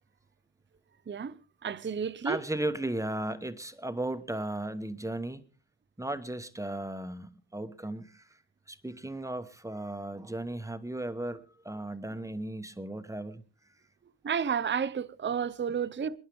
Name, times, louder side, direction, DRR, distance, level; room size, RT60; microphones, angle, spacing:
voice 1, 1.1-1.4 1.6-2.4 14.2-16.2, right 7 dB, 25° right, 0.6 m, -31 dB
voice 2, 2.2-5.4 6.0-8.4 8.7-13.4, right 1 dB, 5° right, 1.0 m, -36 dB
27.0 x 10.5 x 3.4 m
wide cardioid pair, 120°, 49 cm